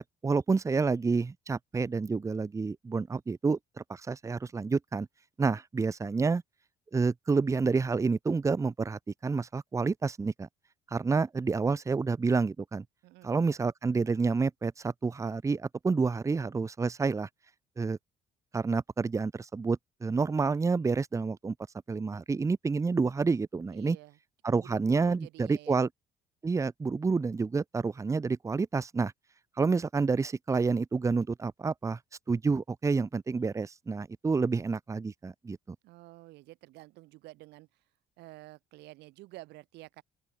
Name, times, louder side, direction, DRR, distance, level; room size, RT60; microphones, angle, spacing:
voice 1, 0.0-5.1 5.4-6.4 6.9-10.5 10.9-12.8 13.2-17.3 17.8-18.0 18.5-21.5 21.9-24.0 24.4-25.9 26.4-29.1 29.6-32.0 32.3-35.8, right 4 dB, 20° right, 0.7 m, -29 dB
voice 2, 23.7-24.2 24.5-25.8 35.8-37.7 38.2-40.0, right 19 dB, 85° right, 3.6 m, -50 dB
open air
cardioid pair, 110°, 17 cm